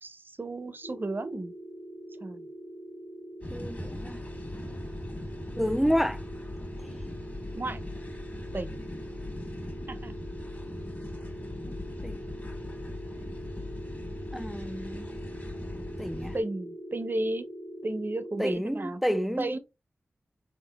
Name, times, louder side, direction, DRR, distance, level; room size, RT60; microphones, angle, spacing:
voice 1, 0.0-1.5 2.2-2.5 7.5-7.8 8.5-8.8 9.9-10.2 16.3-17.5 17.8-19.0 19.4-19.6, right 2 dB, 45° right, 0.6 m, -33 dB
sound 1, 0.8-18.5, equal, 90° left, 1.4 m, -43 dB
sound 2, 3.4-16.4, left 1 dB, 35° left, 1.5 m, -40 dB
voice 2, 3.5-4.2 5.6-6.2 11.7-11.8 12.0-12.2 14.3-15.1 16.0-16.3 18.4-19.5, equal, 5° right, 0.3 m, -29 dB
4.2 x 3.7 x 2.3 m
cardioid pair, 55°, 5 cm